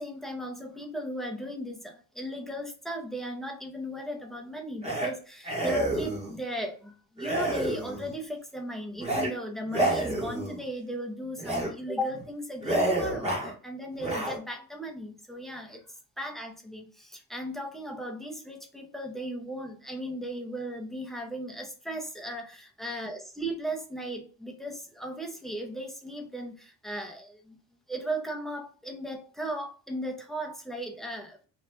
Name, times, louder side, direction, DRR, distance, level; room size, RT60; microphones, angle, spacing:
voice 1, 0.0-15.9 16.2-27.6 27.9-31.4, equal, ahead, 2 dB, 0.6 m, -36 dB
sound 1, 4.8-5.1 5.4-6.3 7.2-8.1 9.0-9.3 9.7-10.6 11.4-11.7 12.1-12.2 12.6-13.5 14.0-14.4, right 1 dB, 15° right, 1.1 m, -29 dB
2.9 x 2.3 x 3.3 m, 0.38 s
cardioid pair, 140°, 37 cm